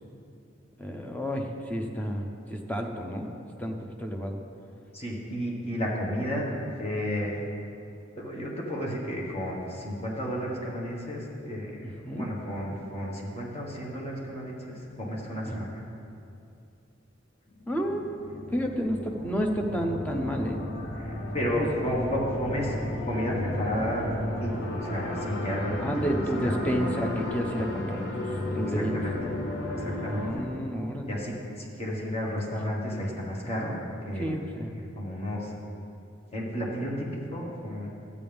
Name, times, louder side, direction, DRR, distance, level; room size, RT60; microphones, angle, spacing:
voice 1, 0.8-3.3 3.6-4.4 11.8-12.3 15.5-15.7 17.7-18.2 18.5-20.6 21.5-22.1 25.8-28.3 28.5-29.0 30.1-31.2 34.2-34.7, equal, 10° left, 2 dB, 0.8 m, -31 dB
voice 2, 4.9-6.5 6.8-7.4 8.2-15.8 21.0-22.7 23.1-26.6 28.7-29.2 29.8-30.4 31.0-33.8 34.0-34.3 35.0-35.5 36.3-37.9, equal, 30° left, -3 dB, 1.8 m, -32 dB
sound 1, 17.5-30.3, left 1 dB, 85° left, 1.2 m, -34 dB
13.0 x 8.6 x 3.5 m, 2.6 s
head